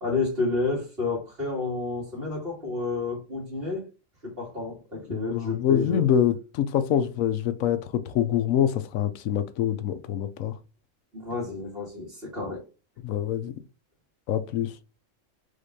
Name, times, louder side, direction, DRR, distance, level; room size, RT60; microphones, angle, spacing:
voice 1, 0.0-3.9 4.2-6.1 11.1-12.6, left 3 dB, 45° right, 2.5 m, -30 dB
voice 2, 5.1-10.6 13.0-13.5 14.3-14.7, left 9 dB, 85° left, 1.1 m, -25 dB
5.1 x 3.6 x 2.7 m
omnidirectional pair, 1.4 m